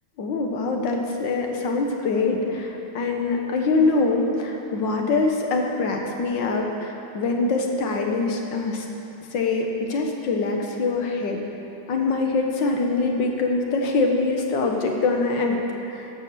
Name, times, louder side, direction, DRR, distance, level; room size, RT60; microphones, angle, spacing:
voice 1, 0.2-8.8 9.3-11.4 11.9-15.6 15.9-16.1, left 3 dB, 65° left, 2 dB, 1.7 m, -24 dB
13.5 x 5.2 x 6.8 m, 2.9 s
omnidirectional pair, 2.2 m